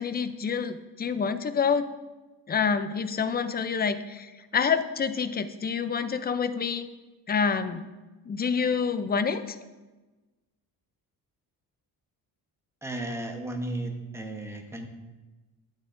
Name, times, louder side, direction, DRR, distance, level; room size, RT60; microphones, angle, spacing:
voice 1, 0.0-1.8 2.5-6.9 7.3-7.9 8.3-9.6, left 6 dB, 25° left, 10 dB, 0.4 m, -27 dB
voice 2, 12.8-14.9, right 1 dB, 5° right, 3 dB, 0.9 m, -34 dB
11.0 x 9.1 x 2.6 m, 1.2 s
cardioid pair, 125°, 39 cm